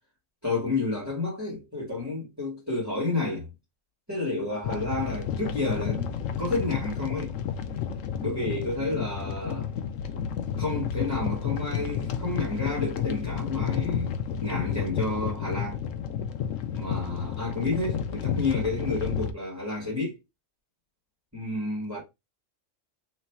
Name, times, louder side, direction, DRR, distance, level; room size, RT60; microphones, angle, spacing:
voice 1, 0.4-3.5 4.1-6.1 6.4-7.3 8.2-9.7 10.6-15.8 16.7-20.1 21.3-22.0, left 3 dB, 15° right, 1.7 m, -30 dB
sound 1, 4.6-19.3, left 8 dB, 80° left, 1.0 m, -31 dB
3.1 x 3.1 x 4.4 m
omnidirectional pair, 1.3 m